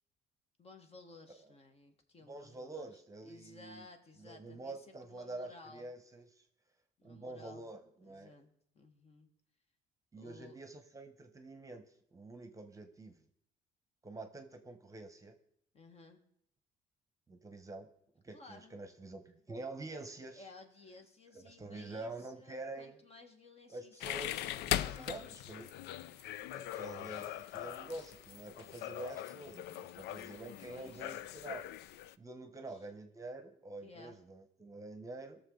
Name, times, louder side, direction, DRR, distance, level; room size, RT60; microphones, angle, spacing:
voice 1, 0.6-2.9 3.2-5.9 7.0-7.7 8.0-9.3 10.2-10.6 15.7-16.2 18.3-18.8 20.3-25.7 30.7-31.2 32.5-32.9 33.8-34.2, left 3 dB, 35° left, 5 dB, 1.5 m, -57 dB
voice 2, 2.3-3.8 4.2-6.5 7.0-8.3 10.1-11.8 12.1-13.2 14.0-15.3 17.3-17.9 18.2-20.5 21.3-23.0 23.7-25.8 26.5-31.6 32.2-35.4, right 2 dB, 20° right, 7 dB, 1.0 m, -47 dB
sound 1, 24.0-32.1, left 13 dB, 85° left, 0.4 m, -41 dB
sound 2, 24.2-24.5 24.9-25.2 25.4-25.7 26.0-26.2 26.5-26.8 27.0-27.3 27.5-27.8 28.1-28.8 29.1-30.3, left 5 dB, 65° left, 1.3 m, -63 dB
18.0 x 6.7 x 3.8 m, 0.71 s
cardioid pair, 110°, 17 cm